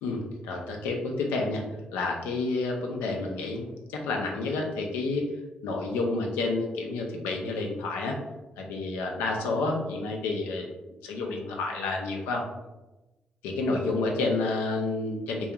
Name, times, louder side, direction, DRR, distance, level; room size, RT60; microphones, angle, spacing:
voice 1, 0.0-1.6 1.9-5.3 5.6-8.2 8.6-10.7 11.0-12.5 13.4-15.5, left 3 dB, 85° left, 1 dB, 0.4 m, -29 dB
2.4 x 2.3 x 2.8 m, 1.1 s
supercardioid pair, 50°, 4 cm